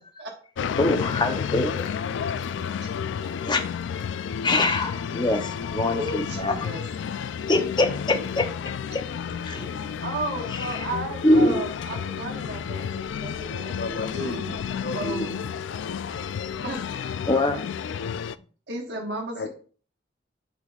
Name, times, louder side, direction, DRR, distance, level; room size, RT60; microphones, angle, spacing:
sound 1, 0.6-18.4, left 7 dB, 85° left, 0.3 m, -31 dB
voice 1, 0.8-2.1 3.2-3.9 4.4-6.6 7.5-9.0 9.4-9.7 10.5-10.9 11.2-11.6 17.3-17.6, left 2 dB, 25° left, 0.7 m, -24 dB
voice 2, 5.9-6.8 10.0-13.8 14.1-14.5 14.9-15.3 16.6-17.1 18.7-19.5, right 2 dB, 70° right, 1.2 m, -34 dB
voice 3, 13.7-15.5 19.3-19.5, left 2 dB, 65° left, 0.8 m, -33 dB
11.5 x 4.1 x 2.3 m
head